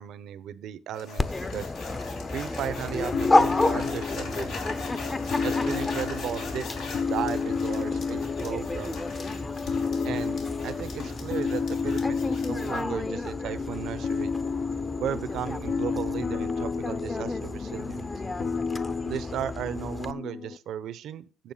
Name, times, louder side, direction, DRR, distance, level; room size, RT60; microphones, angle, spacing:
voice 1, 0.0-1.7 2.3-4.6 5.4-6.7 7.1-9.0 10.0-14.3 15.0-18.1 19.0-21.5, right 10 dB, 80° right, 14 dB, 0.8 m, -35 dB
sound 1, 0.9-12.8, left 4 dB, 85° left, 3.0 m, -40 dB
Dog, 1.2-20.1, left 2 dB, 25° left, 0.7 m, -32 dB
sound 2, 3.1-20.6, left 5 dB, 55° left, 0.6 m, -32 dB
9.1 x 7.0 x 5.5 m, 0.36 s
cardioid pair, 90°, 0 cm